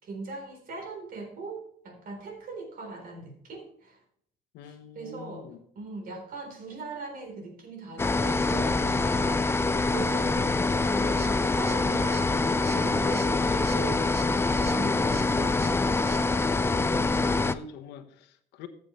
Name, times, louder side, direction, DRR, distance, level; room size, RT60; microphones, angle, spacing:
voice 1, 0.0-4.0 4.6-5.5 5.8-15.6, right 3 dB, 60° right, 3.9 m, -40 dB
voice 2, 4.5-5.6 16.6-18.7, left 7 dB, 85° left, 1.1 m, -44 dB
sound 1, 8.0-17.5, left 3 dB, 15° left, 0.5 m, -25 dB
sound 2, 10.8-16.2, right 5 dB, 40° right, 1.1 m, -47 dB
14.0 x 7.6 x 3.2 m
cardioid pair, 110°, 17 cm